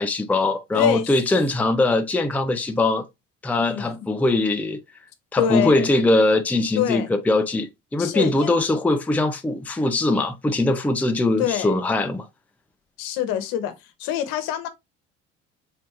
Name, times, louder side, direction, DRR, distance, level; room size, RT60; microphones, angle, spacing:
voice 1, 0.0-3.1 3.4-4.8 5.3-12.3, left 2 dB, 5° left, 0.6 m, -21 dB
voice 2, 0.7-1.1 3.6-3.9 5.4-5.9 6.8-7.1 8.0-8.6 11.4-11.8 13.0-13.7 14.0-14.7, left 9 dB, 60° left, 1.1 m, -25 dB
4.3 x 3.9 x 2.9 m
hypercardioid pair, 60°, 39 cm